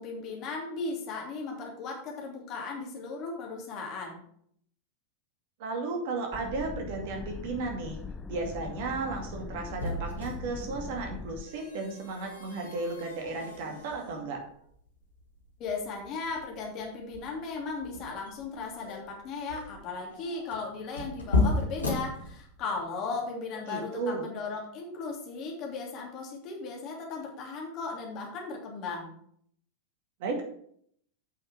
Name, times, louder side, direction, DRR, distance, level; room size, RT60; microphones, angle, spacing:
voice 1, 0.0-4.2 15.6-29.1, left 4 dB, 35° left, 0 dB, 2.8 m, -36 dB
voice 2, 5.6-8.0 8.3-14.4 23.6-24.3 30.2-30.4, right 3 dB, 50° right, 2 dB, 2.3 m, -34 dB
sound 1, 6.3-11.4, left 5 dB, 15° left, 0.5 m, -41 dB
sound 2, 8.7-22.8, left 3 dB, 75° left, 2.7 m, -35 dB
8.3 x 5.9 x 6.1 m, 0.65 s
figure-of-eight pair, 90°, 0 cm